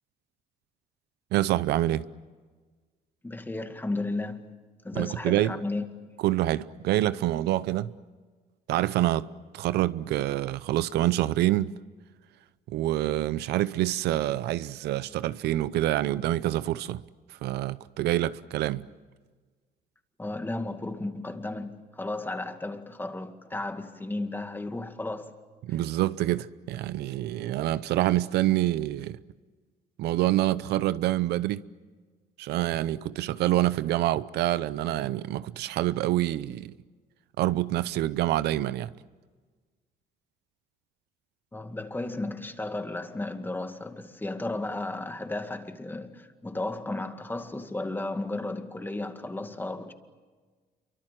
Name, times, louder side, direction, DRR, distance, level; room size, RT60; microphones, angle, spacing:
voice 1, 1.3-2.1 4.9-5.5 6.2-7.9 8.7-9.3 9.5-11.7 12.7-17.0 17.3-18.9 25.6-29.2 30.0-31.7 32.4-36.7 37.4-38.9, right 14 dB, 75° right, 0.7 m, -26 dB
voice 2, 3.2-4.4 4.8-5.9 20.2-25.4 41.5-49.9, left 2 dB, 10° left, 2.1 m, -34 dB
28.0 x 24.5 x 7.6 m
cardioid pair, 110°, 17 cm